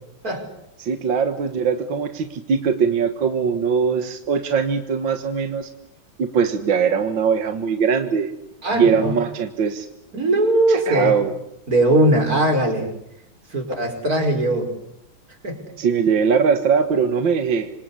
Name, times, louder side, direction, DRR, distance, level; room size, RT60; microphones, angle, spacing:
voice 1, 0.8-5.7 6.2-8.3 8.7-9.9 10.7-11.3 15.8-17.7, right 6 dB, 65° right, 8 dB, 2.2 m, -21 dB
voice 2, 8.6-9.2 10.1-11.2 11.7-12.9 13.5-14.7 15.4-15.6, right 1 dB, 40° right, 6 dB, 5.6 m, -19 dB
27.5 x 25.5 x 8.4 m, 0.80 s
omnidirectional pair, 2.3 m